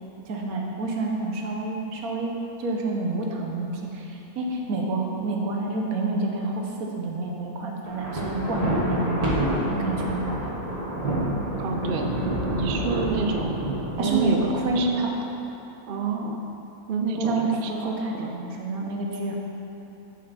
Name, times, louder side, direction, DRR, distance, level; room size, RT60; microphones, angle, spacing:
voice 1, 0.2-2.3 2.6-10.2 14.0-15.1 17.2-19.4, right 2 dB, 80° right, 0 dB, 1.3 m, -28 dB
Thunder, 7.9-15.1, right 1 dB, 30° right, 1.0 m, -28 dB
voice 2, 11.6-13.6 14.0-14.9 15.9-16.4 16.9-17.9 18.2-18.3, right 4 dB, 60° right, 3 dB, 0.5 m, -29 dB
6.3 x 5.9 x 4.1 m, 3.0 s
omnidirectional pair, 1.5 m